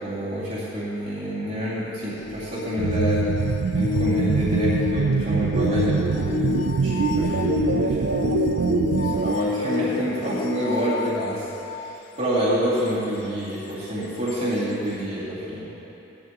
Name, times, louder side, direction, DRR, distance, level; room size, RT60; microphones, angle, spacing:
voice 1, 0.0-3.3 3.7-8.1 9.0-15.8, equal, 45° right, -13 dB, 2.4 m, -28 dB
sound 1, 2.2-12.0 14.3-14.4, left 9 dB, 80° left, 0.5 m, -29 dB
sound 2, 2.8-9.3, right 5 dB, 80° right, 0.4 m, -24 dB
17.0 x 12.5 x 2.9 m, 2.9 s
head